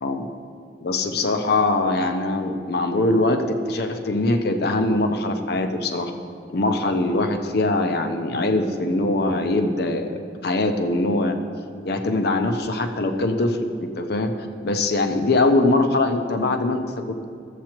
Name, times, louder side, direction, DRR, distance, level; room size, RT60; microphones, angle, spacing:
voice 1, 0.8-6.1 6.5-10.1 10.4-11.4 11.8-14.3 14.6-17.2, left 2 dB, 60° left, 6 dB, 0.6 m, -22 dB
13.0 x 7.5 x 3.0 m, 2.3 s
head